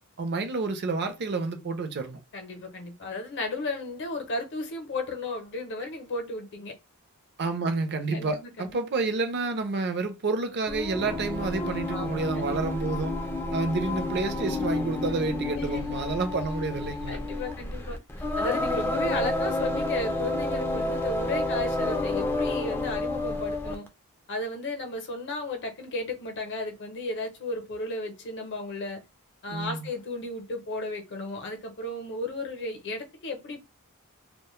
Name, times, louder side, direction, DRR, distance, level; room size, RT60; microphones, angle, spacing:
voice 1, 0.2-2.2 7.4-17.2 29.5-29.8, right 3 dB, 50° right, 0.5 m, -29 dB
voice 2, 2.3-6.7 8.1-8.8 11.9-12.6 15.6-15.8 17.1-18.0 18.4-23.9 24.3-29.0 29.4-33.6, left 2 dB, 55° left, 0.6 m, -34 dB
Singing, 10.7-23.9, left 2 dB, 10° left, 0.3 m, -30 dB
2.1 x 2.0 x 3.0 m
head